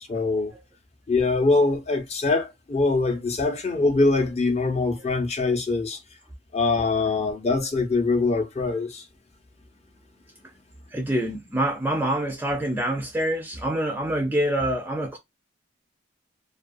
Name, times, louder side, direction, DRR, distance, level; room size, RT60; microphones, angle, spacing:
voice 1, 0.1-0.5 1.1-6.0 6.5-9.0, left 3 dB, 35° left, 0.6 m, -23 dB
voice 2, 10.9-15.2, right 1 dB, 10° right, 0.3 m, -26 dB
2.3 x 2.2 x 2.4 m
head